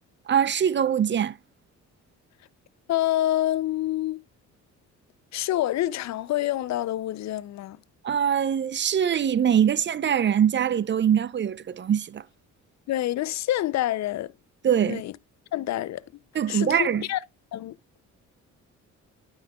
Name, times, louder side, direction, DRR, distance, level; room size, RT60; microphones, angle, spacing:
voice 1, 0.3-1.4 8.0-12.2 14.6-15.0 16.4-17.0, right 8 dB, 40° right, 0.5 m, -23 dB
voice 2, 2.9-4.2 5.3-7.8 12.9-14.3 14.8-15.2 15.5-16.0 16.5-17.2 17.5-17.8, left 14 dB, 65° left, 0.5 m, -27 dB
12.0 x 5.6 x 2.3 m
cardioid pair, 90°, 30 cm